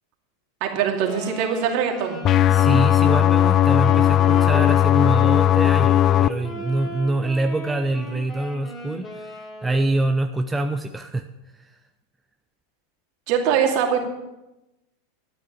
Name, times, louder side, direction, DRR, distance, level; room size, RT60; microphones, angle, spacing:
voice 1, 0.6-2.2 13.3-14.1, right 7 dB, 55° right, 2 dB, 2.4 m, -22 dB
Wind instrument woodwind instrument, 1.0-10.1, left 2 dB, 20° left, 3.6 m, -36 dB
sound 1, 2.2-6.3, left 11 dB, 40° left, 0.4 m, -17 dB
voice 2, 2.5-11.2, right 2 dB, 10° right, 6 dB, 0.7 m, -25 dB
12.0 x 9.4 x 5.7 m, 0.96 s
hypercardioid pair, 95°, 0 cm